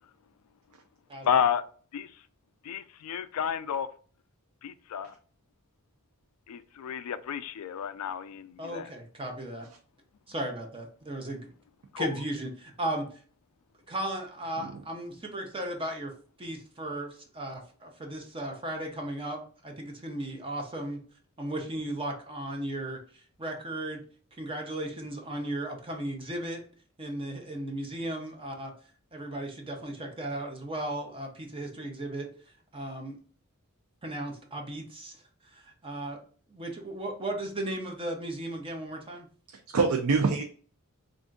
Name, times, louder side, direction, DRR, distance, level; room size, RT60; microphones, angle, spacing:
voice 1, 1.2-1.6 1.9-2.1 2.6-3.9 4.6-5.1 6.5-8.9 11.9-12.2, left 8 dB, 85° left, 0.4 m, -31 dB
voice 2, 8.6-9.7 10.3-11.5 12.0-13.1 13.9-16.1 16.4-21.0 21.4-23.0 23.4-24.0 24.4-26.6 27.0-28.7 29.1-32.3 32.7-33.2 34.0-36.2 36.5-39.3, right 1 dB, 25° right, 0.8 m, -36 dB
voice 3, 39.5-40.4, right 4 dB, 85° right, 0.5 m, -26 dB
3.4 x 2.5 x 3.8 m
head